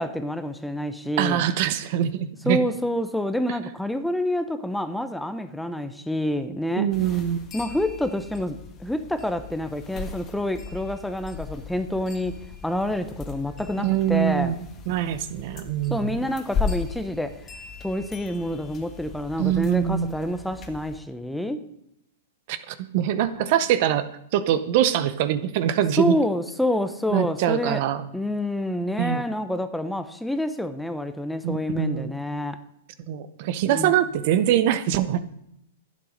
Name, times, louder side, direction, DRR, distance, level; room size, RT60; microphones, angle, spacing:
voice 1, 0.0-1.5 2.4-6.9 7.5-12.3 12.6-14.6 15.9-17.3 17.8-21.6 26.0-27.8 28.1-32.6 33.7-33.9, left 1 dB, ahead, 10 dB, 0.7 m, -27 dB
voice 2, 1.2-2.6 6.8-7.4 13.8-14.6 14.9-16.2 19.4-20.2 22.5-26.1 27.1-28.0 29.0-29.2 31.4-32.1 33.1-35.2, right 11 dB, 55° right, 13 dB, 0.8 m, -23 dB
sound 1, 6.9-21.0, left 5 dB, 30° left, 1.5 m, -37 dB
11.5 x 8.6 x 5.1 m, 0.78 s
hypercardioid pair, 125°, 0 cm